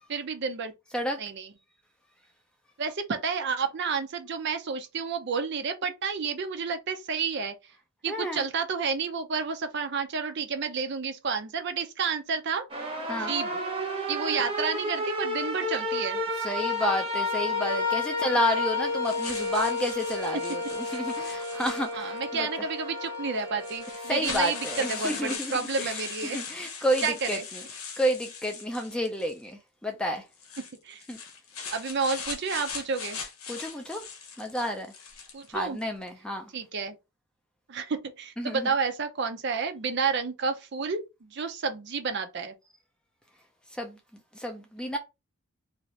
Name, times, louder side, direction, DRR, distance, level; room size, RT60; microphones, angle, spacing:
voice 1, 0.1-0.7 1.2-1.5 2.8-7.5 8.0-13.5 14.1-16.2 22.0-26.4 27.0-27.4 30.8-31.0 31.7-33.2 35.3-35.8 36.5-36.9 37.7-41.0 41.3-42.5, right 5 dB, 50° right, 0.5 m, -30 dB
voice 2, 8.1-8.5 13.1-13.3 16.4-22.5 24.1-27.6 28.0-30.2 31.1-31.2 33.5-34.0 34.4-34.9 35.5-36.5 38.4-38.7 43.7-44.0 44.3-45.0, equal, 5° left, 0.4 m, -30 dB
sound 1, 12.7-25.3, left 2 dB, 25° right, 0.8 m, -31 dB
sound 2, 19.0-22.2 23.1-23.2 23.6-29.4 30.3-35.5, left 5 dB, 80° left, 0.8 m, -40 dB
2.7 x 2.5 x 3.1 m
head